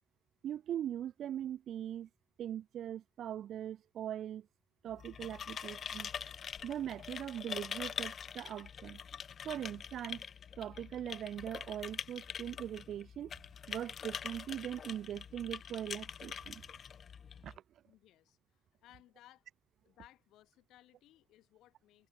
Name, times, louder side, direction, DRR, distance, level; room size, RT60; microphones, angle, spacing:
voice 1, 0.4-2.1 2.4-4.5 4.8-6.1 6.6-9.0 9.4-10.2 10.6-13.3 13.7-16.6 17.4-17.5, right 10 dB, 70° right, 0.3 m, -41 dB
sound 1, 4.9-17.6, left 7 dB, 55° left, 1.4 m, -44 dB
voice 2, 17.8-19.5 19.8-22.1, left 14 dB, 85° left, 5.8 m, -62 dB
cardioid pair, 90°, 0 cm